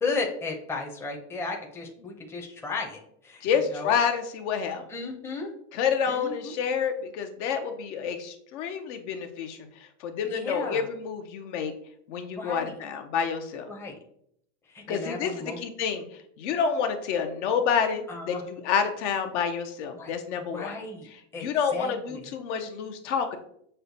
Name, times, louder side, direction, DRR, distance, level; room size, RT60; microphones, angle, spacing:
voice 1, 0.0-4.0 4.9-5.5 6.1-6.5 10.3-10.9 12.4-12.8 13.7-14.0 14.6-15.6 18.1-18.4 19.9-20.1 20.5-21.1 21.3-22.3, left 3 dB, 5° left, 0 dB, 0.5 m, -34 dB
voice 2, 3.4-4.8 5.7-9.6 10.0-11.7 12.1-13.7 14.9-15.3 15.6-16.0 16.4-20.8 21.4-23.4, left 7 dB, 70° left, 6 dB, 0.7 m, -28 dB
6.3 x 2.1 x 2.7 m, 0.69 s
supercardioid pair, 120°, 37 cm